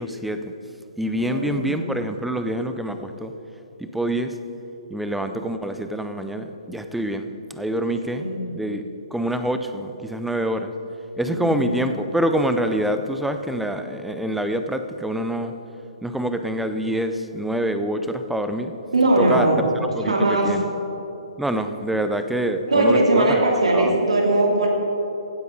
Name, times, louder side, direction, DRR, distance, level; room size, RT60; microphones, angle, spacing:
voice 1, 0.0-3.3 3.8-4.4 4.9-8.3 8.5-8.8 9.1-10.7 11.2-15.5 16.0-18.7 19.2-19.5 20.0-20.6 21.4-23.9, right 1 dB, ahead, 8 dB, 0.5 m, -26 dB
voice 2, 1.1-1.9 7.9-8.5 11.3-11.7 18.9-19.6 20.0-20.5 22.7-24.7, right 2 dB, 80° right, -1 dB, 2.7 m, -20 dB
16.0 x 9.2 x 3.8 m, 3.0 s
figure-of-eight pair, 130°, 3 cm